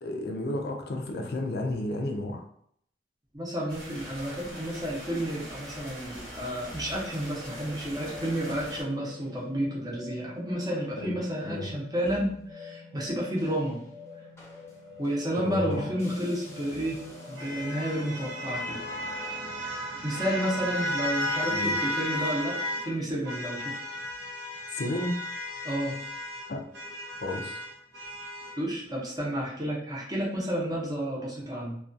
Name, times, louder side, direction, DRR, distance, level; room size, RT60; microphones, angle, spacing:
voice 1, 0.0-2.5 11.0-11.2 11.4-11.7 15.4-15.9 21.5-21.8 24.7-25.2 26.5-26.6 27.2-27.6, left 1 dB, 65° left, 2 dB, 0.4 m, -32 dB
voice 2, 3.3-13.8 15.0-17.0 17.3-18.8 19.6-19.7 20.0-23.8 25.6-26.0 28.6-31.8, equal, 20° right, -5 dB, 0.7 m, -31 dB
sound 1, 3.7-8.8, equal, 60° right, 1.0 m, -42 dB
sound 2, 6.7-21.1, left 4 dB, 15° left, 0.7 m, -47 dB
sound 3, 16.3-22.9 23.3-28.6, equal, 90° right, 0.5 m, -34 dB
2.3 x 2.3 x 2.5 m, 0.67 s
head